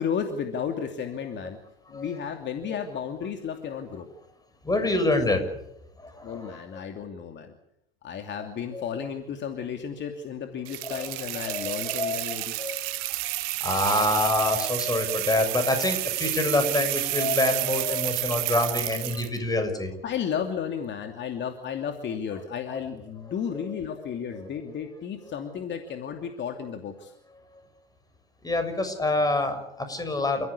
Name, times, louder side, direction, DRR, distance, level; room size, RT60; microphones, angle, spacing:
voice 1, 0.0-1.6 1.9-4.1 6.2-7.5 8.0-12.6 20.0-27.1, left 7 dB, 35° left, 5 dB, 2.8 m, -33 dB
voice 2, 4.6-5.5 6.0-6.6 8.7-9.0 10.9-11.1 11.5-13.2 13.6-19.9 24.0-24.1 28.4-30.5, left 2 dB, 10° left, 8 dB, 6.6 m, -26 dB
sound 1, 10.7-19.4, right 20 dB, 55° right, 1.9 m, -30 dB
29.5 x 15.5 x 8.5 m, 0.80 s
hypercardioid pair, 95°, 31 cm